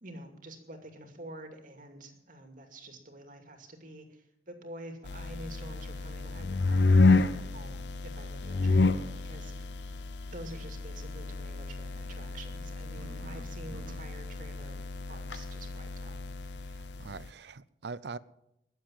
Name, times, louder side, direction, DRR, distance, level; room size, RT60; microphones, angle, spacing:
voice 1, 0.0-9.7 10.3-14.8 15.1-16.2, right 1 dB, 50° right, 2.5 m, -48 dB
sound 1, 5.0-17.3, left 3 dB, 80° left, 0.7 m, -30 dB
voice 2, 13.0-14.0 16.7-18.2, right 4 dB, 75° right, 0.6 m, -44 dB
21.5 x 7.8 x 7.4 m
head